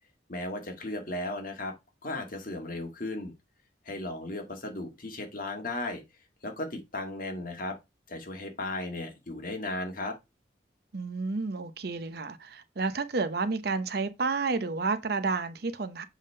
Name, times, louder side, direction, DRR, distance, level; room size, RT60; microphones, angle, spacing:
voice 1, 0.3-1.7 2.0-3.3 3.9-6.0 6.4-7.8 8.1-10.2, left 2 dB, 50° left, 1.9 m, -35 dB
voice 2, 10.9-16.0, right 4 dB, 55° right, 0.7 m, -30 dB
7.4 x 3.6 x 5.4 m
head